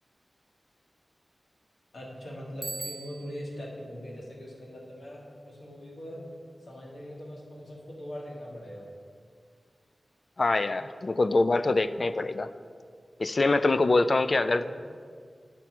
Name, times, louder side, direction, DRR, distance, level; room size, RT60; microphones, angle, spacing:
voice 1, 1.9-6.3 6.6-8.9, equal, 85° left, -3 dB, 1.7 m, -41 dB
Bicycle bell, 2.6-3.6, right 3 dB, 60° right, 0.5 m, -39 dB
voice 2, 10.4-12.5 13.2-14.7, left 2 dB, 55° left, 12 dB, 0.3 m, -24 dB
8.4 x 4.6 x 6.1 m, 2.1 s
wide cardioid pair, 65°, 0 cm